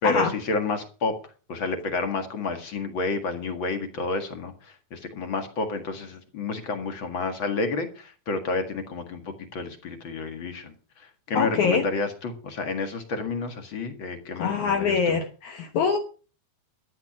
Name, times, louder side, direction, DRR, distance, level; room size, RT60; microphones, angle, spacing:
voice 1, 0.0-15.2, left 3 dB, 45° left, 7 dB, 1.8 m, -30 dB
voice 2, 11.3-11.9 14.4-16.0, left 6 dB, 65° left, 5 dB, 2.2 m, -24 dB
13.5 x 9.7 x 6.2 m, 0.37 s
omnidirectional pair, 4.4 m